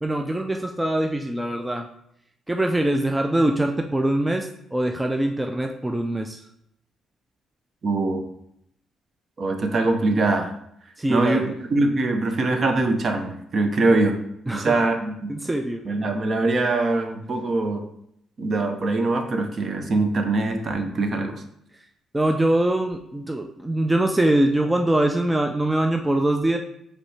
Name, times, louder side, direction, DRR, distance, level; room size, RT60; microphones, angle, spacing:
voice 1, 0.0-1.9 2.5-6.4 11.0-11.5 14.5-14.8 15.3-15.8 22.1-26.6, right 1 dB, 10° right, 4 dB, 0.4 m, -23 dB
voice 2, 7.8-8.2 9.4-10.5 11.1-14.2 14.5-15.3 15.8-17.8 18.4-21.4, right 2 dB, 45° right, 5 dB, 0.7 m, -23 dB
5.1 x 3.2 x 3.2 m, 0.74 s
cardioid pair, 90°, 0 cm